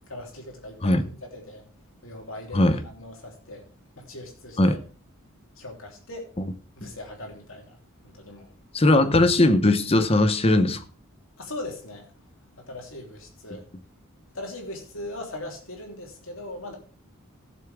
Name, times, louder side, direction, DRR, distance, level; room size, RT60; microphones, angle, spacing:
voice 1, 0.0-1.6 2.0-3.6 4.0-4.8 5.6-6.3 6.7-7.8 8.0-8.5 11.4-12.1 12.6-13.7 14.3-16.8, left 1 dB, 65° left, 3.2 m, -39 dB
voice 2, 8.7-10.8, left 2 dB, 25° left, 0.8 m, -19 dB
16.0 x 7.0 x 3.5 m
head